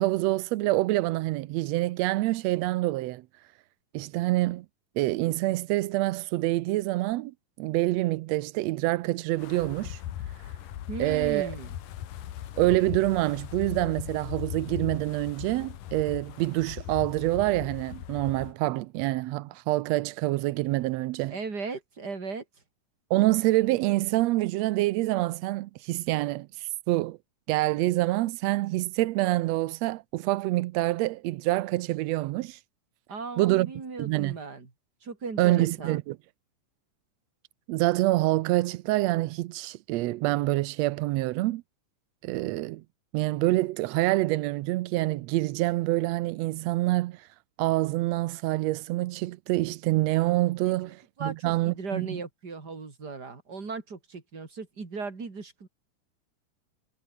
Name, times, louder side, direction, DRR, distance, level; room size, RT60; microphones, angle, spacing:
voice 1, 0.0-3.2 3.9-4.6 5.0-10.0 11.0-11.5 12.6-21.4 23.1-27.2 27.5-32.6 33.4-33.7 34.0-34.4 35.4-36.2 37.7-41.6 42.2-42.8 43.1-47.3 47.6-52.1, right 18 dB, 85° right, 1.5 m, -26 dB
Wind, 9.4-18.5, left 11 dB, 85° left, 3.1 m, -39 dB
voice 2, 10.9-11.8 21.3-22.4 33.1-34.7 35.0-36.0 50.8-55.7, right 4 dB, 30° right, 3.8 m, -37 dB
omnidirectional pair, 3.7 m